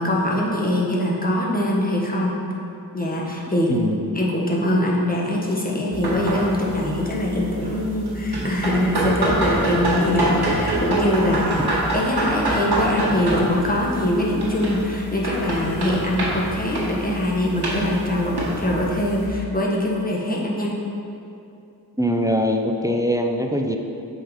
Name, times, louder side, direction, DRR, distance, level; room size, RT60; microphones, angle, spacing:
voice 1, 0.0-2.3 2.9-3.9 4.1-20.7, left 1 dB, 25° left, -4 dB, 1.4 m, -23 dB
voice 2, 3.7-4.2 22.0-23.8, equal, 10° right, 3 dB, 0.6 m, -22 dB
sound 1, 5.9-19.3, right 1 dB, 90° right, 1.6 m, -26 dB
7.4 x 5.1 x 5.2 m, 2.7 s
wide cardioid pair, 60°, 38 cm